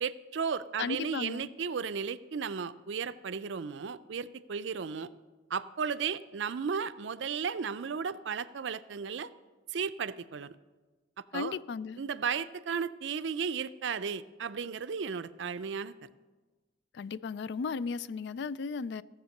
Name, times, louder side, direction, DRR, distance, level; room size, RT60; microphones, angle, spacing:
voice 1, 0.0-5.1 5.5-9.3 9.7-10.6 11.3-11.5 12.0-15.9, right 6 dB, 70° right, 0.4 m, -34 dB
voice 2, 0.8-1.5 11.3-12.0 16.9-19.0, left 5 dB, 65° left, 0.3 m, -35 dB
15.5 x 7.3 x 6.5 m
head